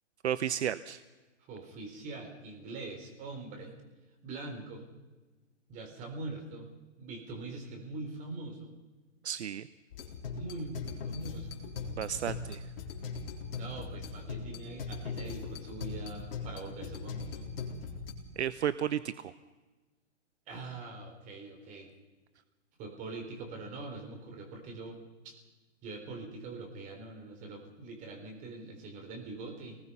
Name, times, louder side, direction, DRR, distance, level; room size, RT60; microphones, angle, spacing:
voice 1, 0.2-1.0 9.2-9.7 11.9-12.6 18.4-19.3, right 9 dB, 65° right, 14 dB, 0.9 m, -33 dB
voice 2, 1.5-3.7 4.2-4.8 5.7-6.7 7.0-8.7 10.3-11.7 13.5-17.5 20.5-21.9 22.8-25.3 25.8-29.8, right 3 dB, 20° right, 3 dB, 4.0 m, -43 dB
sound 1, 9.9-18.1, left 4 dB, 50° left, 3.9 m, -40 dB
26.5 x 19.5 x 5.6 m, 1.2 s
hypercardioid pair, 155°, 36 cm